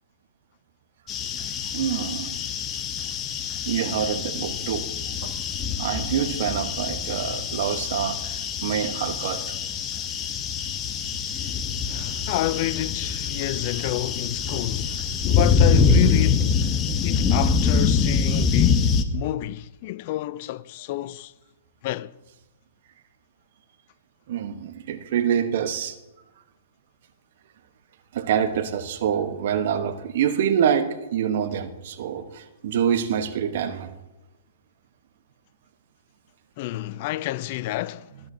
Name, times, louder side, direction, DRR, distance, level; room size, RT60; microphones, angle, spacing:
sound 1, 1.1-19.0, left 5 dB, 25° left, 0.9 m, -24 dB
voice 1, 1.7-2.3 3.7-4.9 5.2-5.3 5.8-9.4 24.3-26.0 28.1-33.9, right 8 dB, 60° right, 1.1 m, -26 dB
voice 2, 11.9-16.6 17.0-21.3 21.8-22.1 36.6-38.1, left 16 dB, 50° left, 0.4 m, -29 dB
19.0 x 10.5 x 2.8 m
hypercardioid pair, 120°, 0 cm